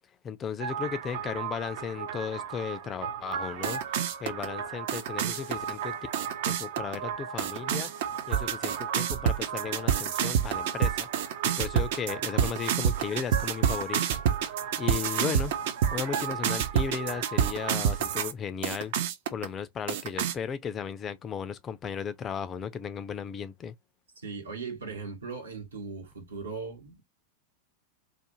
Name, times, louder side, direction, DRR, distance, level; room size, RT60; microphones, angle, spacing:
voice 1, 0.2-3.8 4.2-6.0 6.4-7.9 8.3-11.1 11.4-14.2 14.8-15.5 15.9-18.9 19.3-23.7, left 7 dB, 25° left, 0.3 m, -35 dB
sound 1, 0.6-18.3 18.6-19.4 19.9-20.3, right 8 dB, 50° right, 0.4 m, -29 dB
voice 2, 24.2-27.0, right 4 dB, 70° right, 0.9 m, -38 dB
2.4 x 2.1 x 2.9 m
figure-of-eight pair, 90°, 0 cm